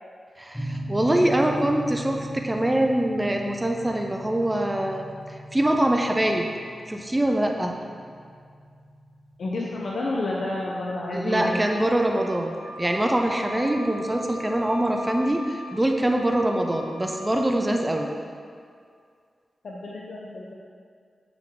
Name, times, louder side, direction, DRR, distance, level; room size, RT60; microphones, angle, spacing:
voice 1, 0.4-6.5 6.9-7.7 11.1-18.1, right 1 dB, 15° right, 2 dB, 0.6 m, -24 dB
sound 1, 0.5-10.7, equal, 10° left, 0.9 m, -39 dB
voice 2, 9.4-11.6 19.6-20.5, left 2 dB, 75° left, -4 dB, 0.8 m, -30 dB
Wind instrument woodwind instrument, 11.3-18.0, equal, 90° right, 0.6 m, -41 dB
8.3 x 5.9 x 3.8 m, 2.2 s
wide cardioid pair, 80°, 0 cm